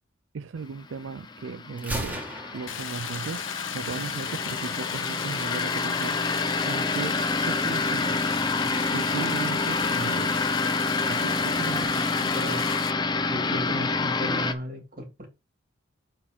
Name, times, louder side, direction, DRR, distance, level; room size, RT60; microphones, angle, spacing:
voice 1, 0.3-2.2 2.5-3.5 3.7-10.3 11.0-12.2, right 5 dB, 80° right, 0.4 m, -37 dB
sound 1, 1.0-14.5, left 3 dB, 25° left, 0.6 m, -28 dB
Gunshot gunfire, 1.8-3.7, equal, 10° right, 1.9 m, -36 dB
Stream, 2.7-12.9, left 9 dB, 85° left, 0.8 m, -36 dB
voice 2, 12.1-12.7 13.3-15.3, equal, 45° right, 2.6 m, -35 dB
7.3 x 4.5 x 5.1 m
head